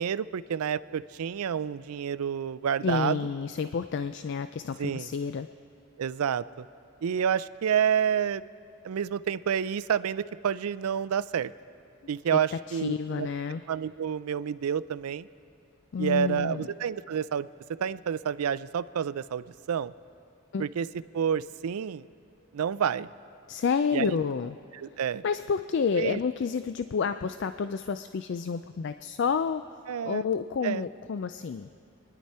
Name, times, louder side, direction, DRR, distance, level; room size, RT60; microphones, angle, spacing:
voice 1, 0.0-3.2 4.8-5.1 6.0-6.6 7.0-8.4 8.8-11.5 12.1-13.3 13.7-15.3 16.0-17.5 17.8-19.9 20.6-20.9 21.1-22.1 22.5-23.1 23.9-24.2 24.7-25.2 25.9-26.2 29.9-30.3 30.6-30.9, right 8 dB, 85° right, 16 dB, 0.4 m, -29 dB
voice 2, 2.8-5.5 12.5-13.6 15.9-16.7 20.5-20.7 23.5-24.6 25.2-29.6 30.1-31.7, left 6 dB, 55° left, 11 dB, 0.3 m, -29 dB
27.0 x 10.5 x 4.3 m, 2.7 s
head